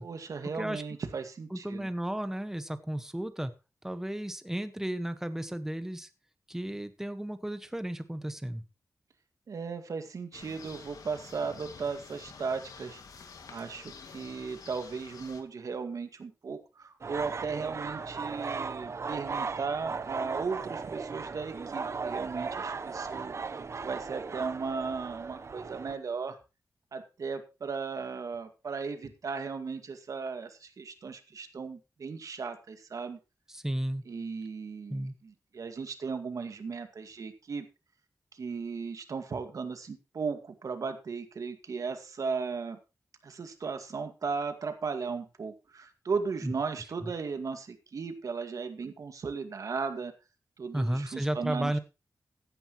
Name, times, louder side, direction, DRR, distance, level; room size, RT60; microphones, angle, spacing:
voice 1, 0.0-1.9 9.5-13.0 13.5-26.4 26.9-33.2 34.1-37.7 38.3-42.8 43.2-50.1 50.6-51.7, right 5 dB, 70° right, 7 dB, 2.0 m, -36 dB
voice 2, 1.5-3.5 3.8-6.1 6.5-8.6 33.5-34.0 34.9-35.1 46.4-46.5 47.0-47.1 50.7-51.8, right 1 dB, 5° right, 10 dB, 1.4 m, -33 dB
sound 1, 10.3-15.4, left 5 dB, 85° left, 2.2 m, -49 dB
sound 2, 17.0-25.9, right 5 dB, 50° right, 0.8 m, -37 dB
16.0 x 10.0 x 3.1 m, 0.29 s
wide cardioid pair, 90°, 6 cm